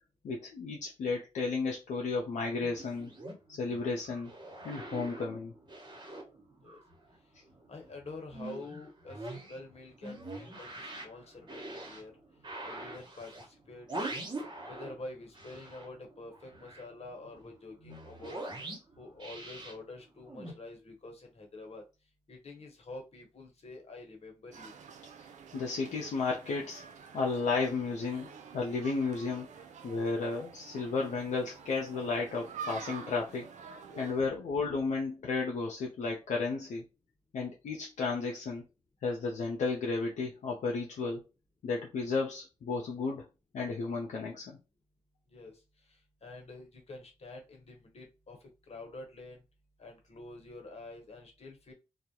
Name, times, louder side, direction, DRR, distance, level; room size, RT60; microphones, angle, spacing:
voice 1, 0.2-3.1 3.6-4.3 4.6-5.5 25.5-26.8 27.1-28.3 28.5-29.5 29.8-33.5 34.0-36.8 37.3-38.6 39.0-41.2 41.6-43.3 43.5-44.6, left 4 dB, 85° left, 0.5 m, -33 dB
sound 1, 2.7-7.2 7.5-15.0 15.3-20.5, right 2 dB, 40° right, 0.9 m, -44 dB
voice 2, 7.7-12.1 12.6-13.9 14.7-18.4 19.0-21.8 22.3-24.7 33.9-34.1 45.3-45.6 46.2-49.4 49.8-51.7, left 2 dB, 60° left, 1.0 m, -47 dB
sound 2, 24.5-34.1, right 6 dB, 80° right, 0.4 m, -48 dB
2.3 x 2.0 x 2.8 m
cardioid pair, 45°, 12 cm